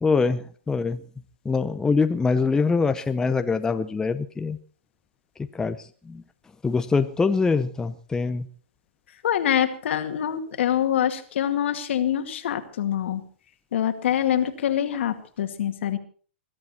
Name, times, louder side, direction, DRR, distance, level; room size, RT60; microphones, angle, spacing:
voice 1, 0.0-1.0 1.4-4.6 5.5-6.2 6.6-8.5, left 4 dB, 10° left, 9 dB, 0.7 m, -24 dB
voice 2, 9.2-13.2 13.7-16.0, left 10 dB, 75° left, 7 dB, 2.2 m, -25 dB
21.5 x 12.5 x 4.3 m, 0.41 s
hypercardioid pair, 140°, 7 cm